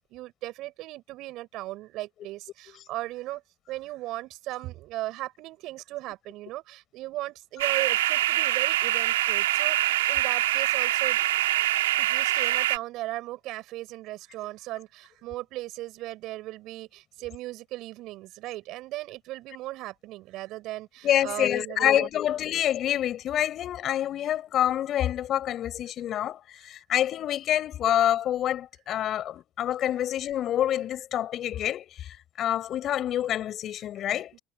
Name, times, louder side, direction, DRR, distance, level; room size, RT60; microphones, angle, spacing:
voice 1, 0.1-3.4 3.7-11.2 12.0-22.1 34.0-34.1, right 17 dB, 60° right, 6.8 m, -37 dB
sound 1, 7.6-12.8, right 15 dB, 85° right, 4.8 m, -24 dB
voice 2, 21.0-34.3, left 11 dB, 50° left, 5.8 m, -27 dB
hypercardioid pair, 80°, 0 cm